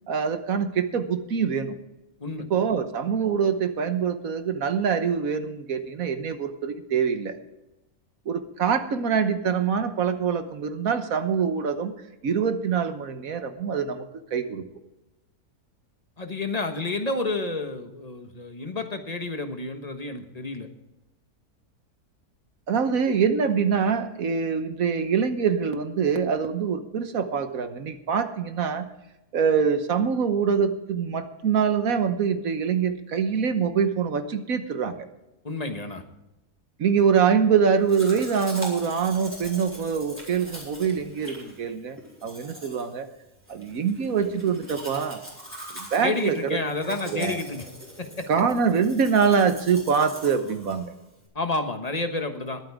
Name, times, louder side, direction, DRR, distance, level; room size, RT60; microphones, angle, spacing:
voice 1, 0.1-1.7 2.5-7.3 8.3-11.9 12.2-14.0 14.3-14.6 22.7-28.9 29.3-35.1 36.8-43.1 43.5-45.2 45.7-46.6 46.9-47.4 48.3-50.9, right 6 dB, 65° right, 9 dB, 1.5 m, -24 dB
voice 2, 16.2-20.7 35.4-36.0 46.0-47.7 48.0-48.3 51.3-52.6, left 2 dB, 25° left, 6 dB, 1.3 m, -30 dB
Domestic sounds home sounds, 37.9-51.3, equal, 5° right, 4.1 m, -42 dB
21.0 x 8.9 x 3.6 m, 0.94 s
omnidirectional pair, 1.6 m